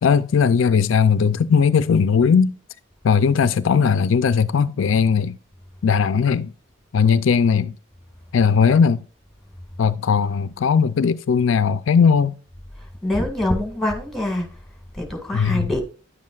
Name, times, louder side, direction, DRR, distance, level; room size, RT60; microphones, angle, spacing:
voice 1, 0.0-2.6 3.0-5.4 5.8-6.5 6.9-7.8 8.3-9.0 9.8-12.3 15.3-15.7, left 6 dB, 65° left, 0.4 m, -18 dB
voice 2, 12.8-14.6 14.9-15.8, left 1 dB, ahead, 1.8 m, -25 dB
10.0 x 7.5 x 2.3 m
head